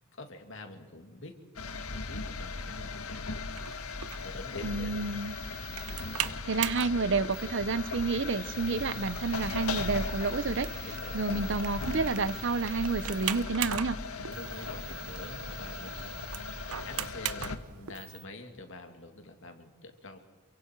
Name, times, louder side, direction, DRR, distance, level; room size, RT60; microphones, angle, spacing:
voice 1, 0.1-1.4 2.1-3.2 4.2-5.0 5.9-7.0 10.8-11.5 14.3-16.2 16.7-20.2, left 2 dB, 60° left, 5 dB, 2.6 m, -46 dB
sound 1, 1.6-17.6, left 4 dB, 90° left, 1.6 m, -38 dB
sound 2, 3.5-18.2, right 10 dB, 85° right, 0.9 m, -41 dB
voice 2, 4.6-5.4 6.5-10.7 11.1-14.0, right 3 dB, 55° right, 15 dB, 0.8 m, -30 dB
28.0 x 24.0 x 4.6 m, 1.4 s
head